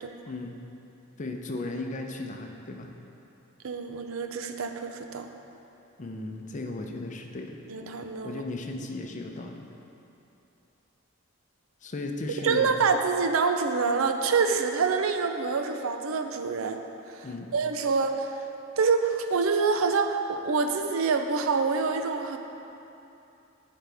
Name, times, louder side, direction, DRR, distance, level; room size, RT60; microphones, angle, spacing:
voice 1, 0.3-0.6 1.2-2.9 6.0-7.6 8.2-9.7 11.8-12.7 17.2-17.5, left 2 dB, 35° left, 3 dB, 0.6 m, -36 dB
voice 2, 3.6-5.3 7.7-8.4 12.4-16.8 17.5-18.4 18.8-22.4, right 4 dB, 90° right, 6 dB, 0.5 m, -26 dB
12.0 x 5.1 x 3.4 m, 2.9 s
head